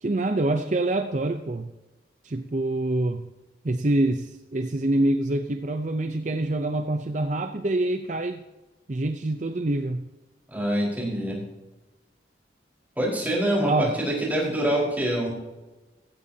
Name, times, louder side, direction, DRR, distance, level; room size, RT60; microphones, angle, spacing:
voice 1, 0.0-1.7 2.2-3.3 3.6-8.4 8.9-10.1 13.6-13.9, right 2 dB, 40° right, 7 dB, 0.6 m, -26 dB
voice 2, 10.5-11.4 13.0-15.3, right 1 dB, 10° right, -4 dB, 4.6 m, -25 dB
16.0 x 15.5 x 2.8 m, 1.1 s
head